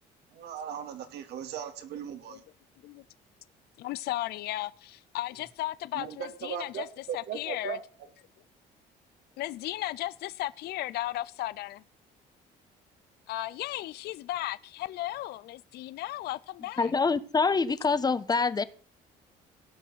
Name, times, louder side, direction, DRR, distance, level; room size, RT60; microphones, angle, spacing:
voice 1, 0.3-2.4 5.9-7.8, right 8 dB, 75° right, 2.8 m, -38 dB
voice 2, 3.8-7.8 9.4-11.8 13.3-16.9, left 16 dB, 75° left, 0.6 m, -35 dB
voice 3, 16.8-18.6, left 4 dB, 25° left, 1.2 m, -25 dB
17.5 x 6.2 x 9.5 m
cardioid pair, 110°, 17 cm